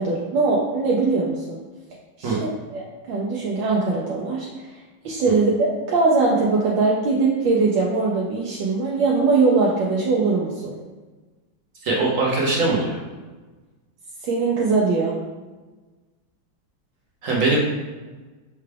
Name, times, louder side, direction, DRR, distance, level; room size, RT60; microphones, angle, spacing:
voice 1, 0.0-1.6 2.2-10.7 14.2-15.1, right 3 dB, 80° right, -4 dB, 1.3 m, -21 dB
voice 2, 11.8-13.0 17.2-17.6, right 3 dB, 55° right, -4 dB, 0.9 m, -21 dB
5.7 x 2.3 x 3.3 m, 1.3 s
omnidirectional pair, 2.0 m